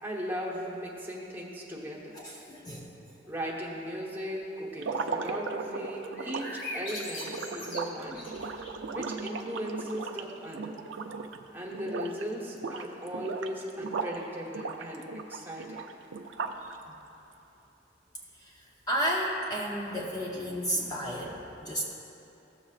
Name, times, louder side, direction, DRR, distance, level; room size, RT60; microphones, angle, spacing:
voice 1, 0.0-2.2 3.3-8.3 8.9-10.8 11.5-15.0 15.3-15.8, equal, 10° right, -4 dB, 1.1 m, -37 dB
voice 2, 2.1-3.1 8.4-8.5 18.4-21.8, equal, 20° left, -3 dB, 0.7 m, -33 dB
sound 1, 4.8-11.4 11.7-12.2 12.5-14.2 14.5-16.7, right 4 dB, 85° right, 0.5 m, -37 dB
sound 2, 6.1-8.9, left 1 dB, 85° left, 1.9 m, -40 dB
15.5 x 7.2 x 2.4 m, 2.9 s
head